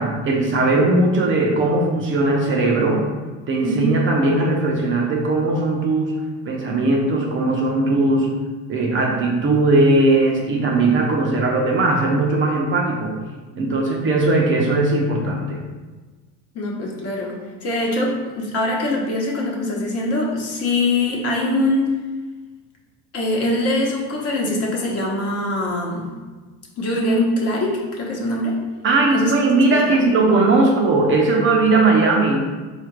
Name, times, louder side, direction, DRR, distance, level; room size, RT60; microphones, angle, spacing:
voice 1, 0.0-3.1 3.5-8.4 8.7-13.2 13.6-15.6 28.8-32.4, right 2 dB, 35° right, 0 dB, 0.6 m, -18 dB
voice 2, 3.6-3.9 16.5-21.9 23.1-26.1 26.8-28.6 29.1-29.3 29.7-30.0, left 1 dB, 40° left, -1 dB, 1.0 m, -23 dB
3.8 x 2.5 x 4.5 m, 1.3 s
cardioid pair, 135°, 36 cm